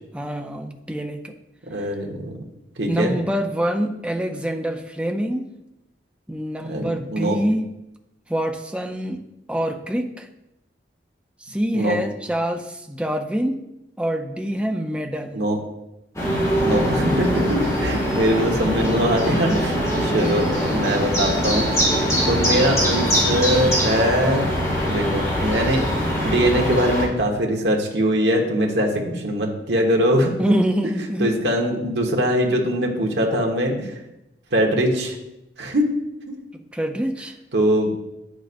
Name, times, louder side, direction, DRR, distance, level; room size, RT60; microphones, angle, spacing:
voice 1, 0.1-1.3 1.8-1.9 2.9-5.4 6.3-7.6 8.3-9.2 9.5-10.3 11.4-13.6 14.0-15.4 17.9-18.1 19.3-19.6 19.9-20.4 24.8-25.1 30.4-31.3 36.5-37.3, equal, 5° right, 5 dB, 0.5 m, -26 dB
voice 2, 1.6-2.4 2.8-3.1 6.7-7.4 11.7-12.0 15.3-15.6 16.6-19.5 20.1-21.8 22.3-24.5 24.8-25.9 26.2-30.3 31.2-34.0 34.5-35.1 35.6-35.9 36.3-36.4 37.5-38.0, equal, 70° right, 0 dB, 1.3 m, -22 dB
sound 1, 16.1-27.0, equal, 20° left, 2.0 m, -22 dB
9.5 x 6.2 x 2.6 m, 0.89 s
head